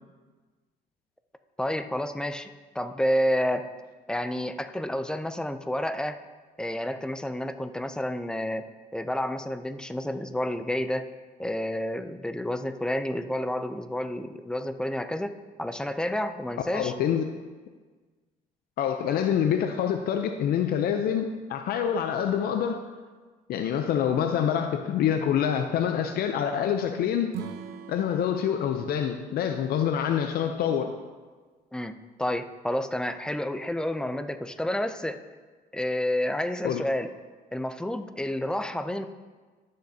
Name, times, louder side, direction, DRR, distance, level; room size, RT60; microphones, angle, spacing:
voice 1, 1.6-2.5 2.7-3.7 4.1-6.2 6.6-11.1 11.4-16.9 31.7-31.9 32.2-35.2 35.7-37.1 37.5-39.1, left 1 dB, 5° left, 10 dB, 0.4 m, -30 dB
voice 2, 16.7-17.3 18.8-22.8 23.5-27.4 27.9-30.9 36.6-36.8, left 8 dB, 65° left, 6 dB, 0.5 m, -26 dB
Acoustic guitar / Strum, 27.3-30.6, right 10 dB, 75° right, 0.6 m, -43 dB
11.5 x 6.6 x 2.7 m, 1.4 s
cardioid pair, 110°, 17 cm